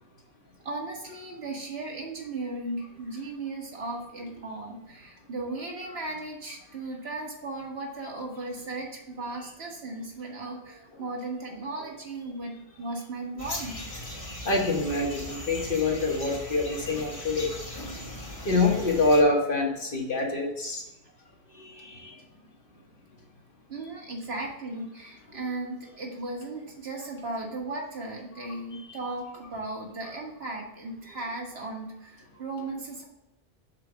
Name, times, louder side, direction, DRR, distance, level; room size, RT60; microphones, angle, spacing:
voice 1, 0.6-13.7 23.7-33.0, right 2 dB, 70° right, 0 dB, 1.6 m, -36 dB
sound 1, 13.4-19.2, left 1 dB, 35° left, 1.3 m, -39 dB
voice 2, 14.4-17.5 18.4-20.8 21.6-22.1 28.9-29.0, left 2 dB, 55° left, 0 dB, 1.4 m, -25 dB
5.8 x 4.0 x 5.9 m, 0.91 s
omnidirectional pair, 1.1 m